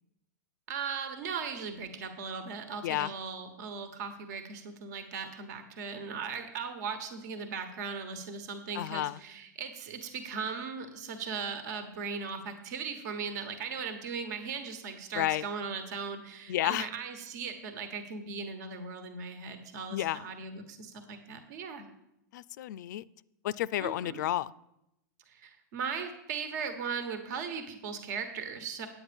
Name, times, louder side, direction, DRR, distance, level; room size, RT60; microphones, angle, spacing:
voice 1, 0.7-21.8 23.8-24.2 25.3-28.9, right 5 dB, 60° right, 8 dB, 1.4 m, -38 dB
voice 2, 8.7-9.2 15.1-15.4 16.5-16.9 19.9-20.3 22.3-23.0 23.4-24.5, left 13 dB, 70° left, 20 dB, 0.4 m, -31 dB
9.1 x 8.8 x 5.2 m, 0.84 s
hypercardioid pair, 120°, 10 cm